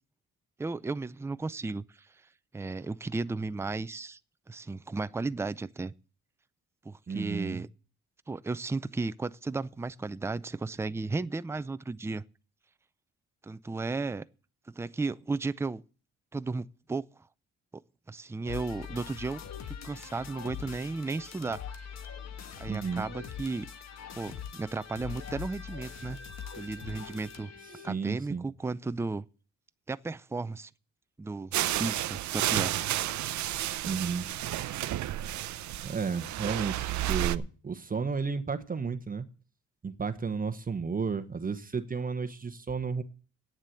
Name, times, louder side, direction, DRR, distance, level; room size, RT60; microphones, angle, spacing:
voice 1, 0.6-1.8 2.5-4.2 4.5-5.9 6.8-7.7 8.3-12.2 13.4-14.2 14.7-15.8 16.3-17.0 18.1-19.4 19.7-21.6 22.5-23.7 24.1-26.2 26.6-27.5 27.8-29.2 29.9-30.7 31.2-32.8, right 3 dB, 10° right, 0.4 m, -34 dB
voice 2, 7.1-7.6 22.7-23.1 27.6-28.5 33.9-34.3 35.8-39.3 39.8-43.0, right 5 dB, 30° right, 1.1 m, -33 dB
sound 1, 18.5-27.9, left 7 dB, 60° left, 1.4 m, -43 dB
sound 2, 31.5-37.4, right 14 dB, 70° right, 0.6 m, -31 dB
9.2 x 7.4 x 8.3 m
cardioid pair, 90°, 30 cm